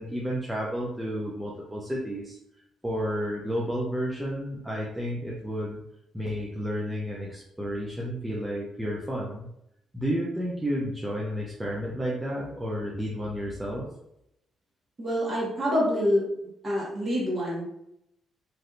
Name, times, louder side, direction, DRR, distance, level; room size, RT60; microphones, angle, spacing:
voice 1, 0.0-2.4 2.8-5.8 6.1-9.5 9.9-13.9, equal, 10° right, -4 dB, 0.6 m, -31 dB
voice 2, 15.0-16.2 16.6-17.8, equal, 30° right, -5 dB, 1.4 m, -26 dB
3.2 x 2.7 x 2.5 m, 0.80 s
cardioid pair, 90°, 0 cm